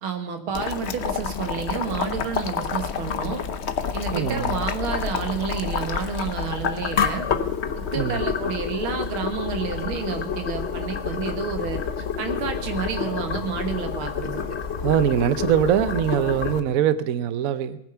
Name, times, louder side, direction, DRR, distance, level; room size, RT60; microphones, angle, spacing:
voice 1, 0.0-3.4 3.9-7.3 7.8-11.8 12.2-14.4, right 6 dB, 85° right, 6 dB, 2.3 m, -30 dB
Boiling, 0.5-16.6, left 6 dB, 55° left, 0.7 m, -28 dB
voice 2, 4.1-4.6 8.0-8.2 14.8-17.8, right 9 dB, 60° right, 13 dB, 0.9 m, -22 dB
19.5 x 9.4 x 5.6 m, 0.77 s
omnidirectional pair, 2.2 m